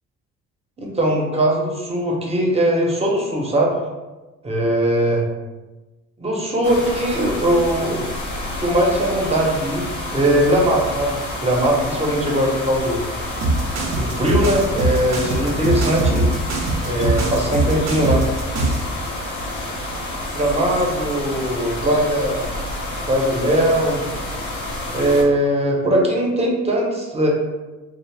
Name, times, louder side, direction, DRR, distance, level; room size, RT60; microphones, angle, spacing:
voice 1, 0.8-3.7 4.4-5.2 6.2-8.1 8.6-9.9 10.1-13.1 13.9-16.3 16.8-18.2 20.3-22.5 23.1-24.0 24.9-27.3, right 1 dB, 20° right, -1 dB, 0.7 m, -20 dB
sound 1, 6.6-25.2, left 1 dB, 80° left, 0.8 m, -29 dB
sound 2, 13.4-18.9, right 2 dB, 60° right, 0.6 m, -21 dB
2.5 x 2.0 x 3.2 m, 1.2 s
cardioid pair, 90°, 30 cm